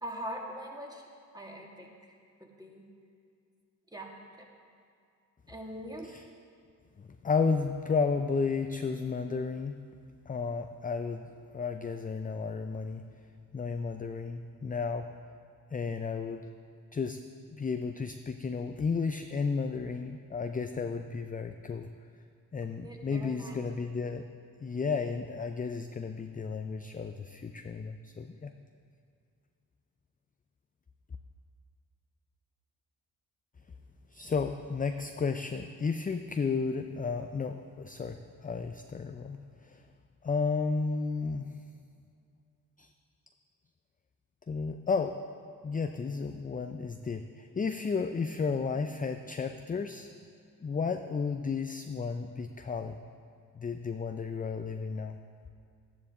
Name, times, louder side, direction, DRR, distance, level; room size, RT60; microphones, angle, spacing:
voice 1, 0.0-1.0 1.3-1.9 2.4-2.9 3.9-4.5 5.5-6.1 22.8-23.5, right 1 dB, 10° right, 0 dB, 2.0 m, -42 dB
voice 2, 7.0-9.8 10.3-11.3 11.5-13.1 13.5-15.1 15.7-16.5 16.9-17.2 17.5-21.9 22.5-24.2 24.6-28.5 34.1-39.9 40.2-41.5 42.8-42.9 44.5-45.2 45.6-50.1 50.6-53.0 53.5-55.2, left 5 dB, 20° left, 7 dB, 0.5 m, -33 dB
12.0 x 10.5 x 3.6 m, 2.3 s
hypercardioid pair, 45°, 42 cm